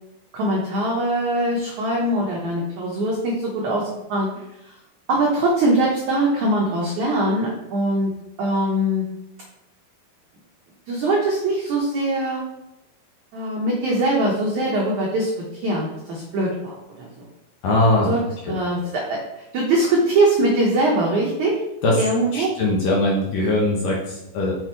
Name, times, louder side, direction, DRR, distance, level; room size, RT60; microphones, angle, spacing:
voice 1, 0.3-4.3 4.6-4.7 5.1-8.1 8.4-9.1 10.9-12.4 13.3-17.3 18.1-18.2 18.5-19.2 19.5-21.6 22.0-22.5, right 1 dB, 85° right, -3 dB, 1.6 m, -22 dB
voice 2, 17.6-18.1 21.8-22.0 22.3-24.6, left 2 dB, 65° left, -3 dB, 2.3 m, -20 dB
6.4 x 6.3 x 4.5 m, 0.91 s
omnidirectional pair, 5.1 m